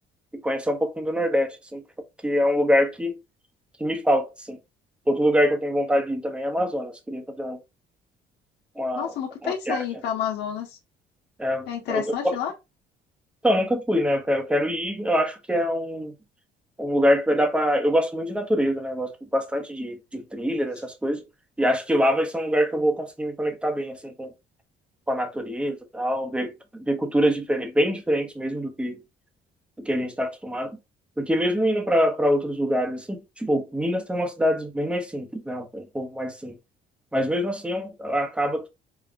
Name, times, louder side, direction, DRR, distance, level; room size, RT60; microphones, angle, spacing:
voice 1, 0.3-1.8 2.2-3.1 3.8-4.6 5.1-7.6 8.8-9.1 9.4-9.8 11.4-12.1 13.4-16.1 16.8-21.2 21.6-24.3 25.1-29.0 29.8-30.8 31.2-36.6 37.1-38.7, equal, 5° right, 0.8 m, -25 dB
voice 2, 8.9-10.8 11.7-12.5, left 9 dB, 85° left, 1.1 m, -29 dB
4.9 x 2.3 x 2.6 m
cardioid pair, 110°, 17 cm